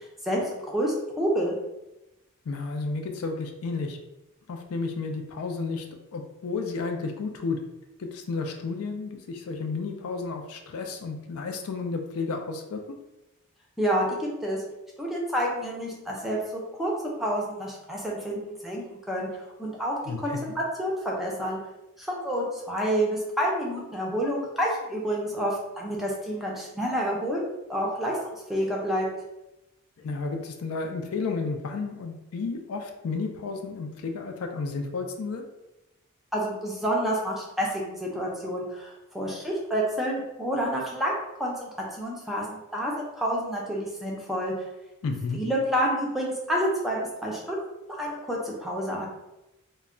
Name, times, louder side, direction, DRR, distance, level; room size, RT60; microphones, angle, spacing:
voice 1, 0.2-1.6 13.8-14.6 15.0-16.9 17.2-20.5 20.8-21.6 22.0-27.4 27.7-29.1 36.3-41.7 42.0-44.7 45.3-47.6 48.0-49.1, equal, ahead, -3 dB, 0.4 m, -29 dB
voice 2, 2.5-4.0 4.5-5.9 6.1-7.6 8.0-12.8 20.1-20.6 30.0-35.4 45.0-45.4, left 4 dB, 75° left, 4 dB, 0.4 m, -32 dB
2.2 x 2.1 x 3.6 m, 0.95 s
head